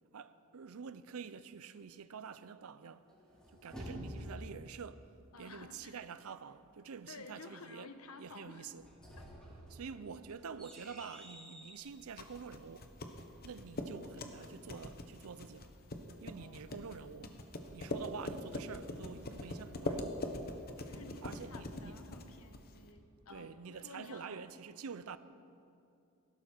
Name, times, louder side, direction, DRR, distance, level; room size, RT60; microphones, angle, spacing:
voice 1, 0.1-3.1 3.5-5.1 5.4-7.9 8.2-8.9 9.7-12.9 13.4-15.7 16.2-17.3 17.7-20.1 21.2-22.0 23.3-25.2, right 6 dB, 80° right, 0.5 m, -47 dB
sound 1, 3.1-4.6 8.6-11.9, equal, 5° left, 3.6 m, -49 dB
voice 2, 5.3-6.1 7.1-8.7 9.2-9.3 16.3-16.8 20.8-24.4, left 3 dB, 85° left, 1.0 m, -53 dB
sound 2, 11.9-22.9, left 1 dB, 45° left, 1.0 m, -43 dB
17.0 x 12.0 x 4.5 m
head